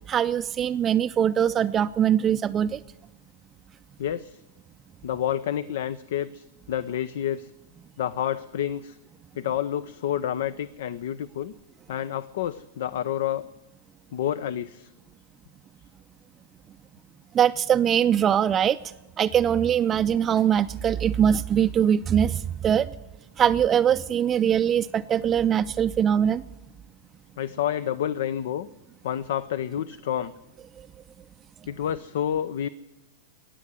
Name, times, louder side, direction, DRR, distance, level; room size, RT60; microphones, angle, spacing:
voice 1, 0.1-2.8 17.3-18.8 19.2-22.9 23.4-26.4, right 9 dB, 25° right, 9 dB, 0.4 m, -22 dB
voice 2, 4.0-4.4 5.0-7.5 8.0-9.0 9.4-11.5 11.9-13.4 14.1-14.9 27.4-28.7 29.0-30.3 31.7-32.7, left 10 dB, 65° left, 18 dB, 0.5 m, -29 dB
19.5 x 7.6 x 9.7 m, 1.1 s
hypercardioid pair, 110°, 0 cm